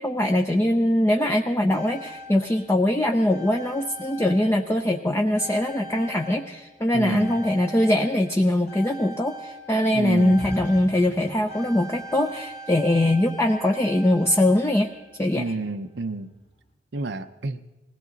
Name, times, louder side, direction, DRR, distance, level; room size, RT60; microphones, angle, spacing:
voice 1, 0.0-14.9 15.2-15.5, left 1 dB, 15° left, 3 dB, 0.6 m, -22 dB
sound 1, 1.7-5.0 5.3-15.4 16.4-16.5, equal, 35° left, 2.3 m, -41 dB
voice 2, 6.9-7.4 9.9-10.5 15.4-16.3 16.9-17.6, right 3 dB, 70° right, 9 dB, 0.7 m, -29 dB
20.5 x 16.5 x 4.0 m, 1.0 s
head